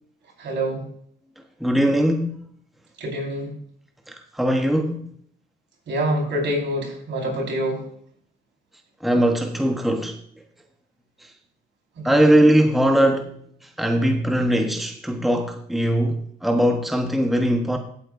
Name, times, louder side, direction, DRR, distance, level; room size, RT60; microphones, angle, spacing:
voice 1, 0.4-0.8 3.0-3.5 5.9-7.8 12.0-12.2, right 1 dB, 65° right, 4.9 m, -26 dB
voice 2, 1.6-2.4 4.1-5.1 9.0-10.2 12.0-13.3 13.8-17.8, right 1 dB, ahead, 1.1 m, -20 dB
15.5 x 8.4 x 2.6 m
cardioid pair, 90°, 20 cm